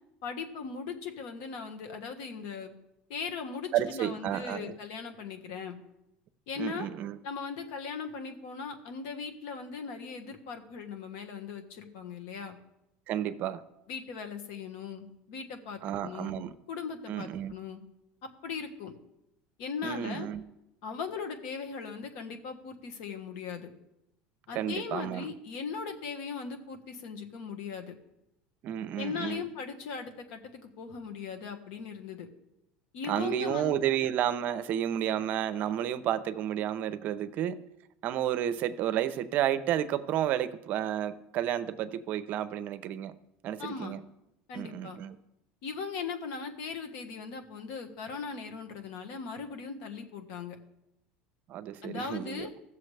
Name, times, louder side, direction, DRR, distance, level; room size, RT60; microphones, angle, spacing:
voice 1, 0.2-2.7 3.1-5.8 6.5-6.9 7.2-12.6 13.9-16.4 16.7-17.8 18.2-18.9 19.6-20.3 20.8-23.7 24.5-27.9 29.0-32.3 32.9-33.8 43.6-44.0 44.5-45.0 45.6-50.6 51.8-52.5, left 5 dB, 70° left, 5 dB, 1.4 m, -39 dB
voice 2, 3.7-4.7 6.6-7.2 13.1-13.6 15.8-16.5 17.1-17.5 19.8-20.4 24.5-25.3 28.6-29.5 33.1-37.6 38.0-43.2 43.4-44.0 44.5-45.2 51.5-52.5, right 11 dB, 50° right, 13 dB, 0.6 m, -31 dB
15.5 x 6.9 x 3.3 m, 0.87 s
supercardioid pair, 125°, 4 cm